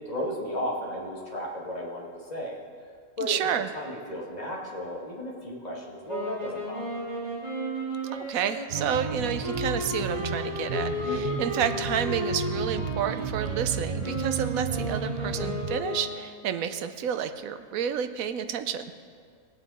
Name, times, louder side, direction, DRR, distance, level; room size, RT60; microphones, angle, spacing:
voice 1, 0.0-2.6 3.2-3.4 3.7-7.1 11.0-11.4, equal, 30° left, -4 dB, 2.1 m, -34 dB
voice 2, 3.2-3.7 8.0-18.9, right 8 dB, 75° right, 10 dB, 1.1 m, -30 dB
sound 1, 6.1-16.5, equal, 25° right, 2.8 m, -34 dB
sound 2, 8.7-15.8, right 6 dB, 50° right, 0.9 m, -33 dB
19.0 x 8.2 x 4.2 m, 2.1 s
omnidirectional pair, 1.5 m